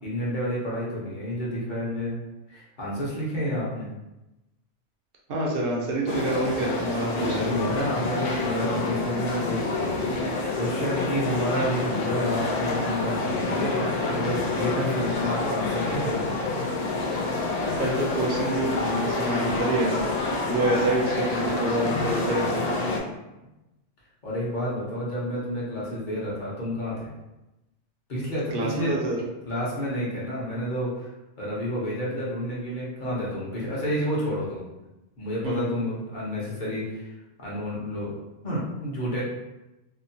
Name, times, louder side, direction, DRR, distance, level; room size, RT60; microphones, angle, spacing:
voice 1, 0.0-2.1 2.5-3.9 7.1-16.4 24.2-27.1 28.1-28.9 29.5-31.1 31.4-34.6 35.2-37.1 37.4-38.1 38.4-39.2, equal, 45° left, -6 dB, 0.9 m, -30 dB
voice 2, 5.3-7.6 14.8-14.9 17.8-20.1 20.5-22.8 28.5-29.2 35.4-35.8, right 2 dB, 60° right, -3 dB, 0.7 m, -27 dB
sound 1, 6.1-23.0, left 3 dB, 70° left, 0.3 m, -28 dB
2.9 x 2.0 x 2.6 m, 0.99 s
omnidirectional pair, 1.2 m